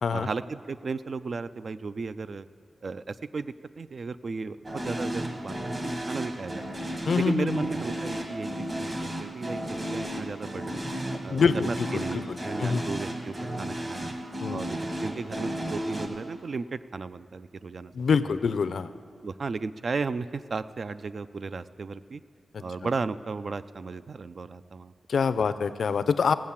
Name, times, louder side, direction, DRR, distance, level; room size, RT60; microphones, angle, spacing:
voice 1, 0.1-2.5 2.8-6.6 7.1-9.6 9.9-10.8 11.2-14.1 14.5-17.9 18.4-18.5 19.2-22.2 22.6-24.9 25.4-25.5, right 4 dB, 50° right, 14 dB, 0.4 m, -35 dB
sound 1, 4.6-16.1, right 1 dB, 30° right, 1.3 m, -34 dB
voice 2, 7.1-7.6 11.3-12.8 14.4-14.7 17.9-18.9 25.1-26.3, left 5 dB, 70° left, 13 dB, 0.5 m, -25 dB
17.0 x 7.4 x 7.2 m, 2.2 s
wide cardioid pair, 120°, 0 cm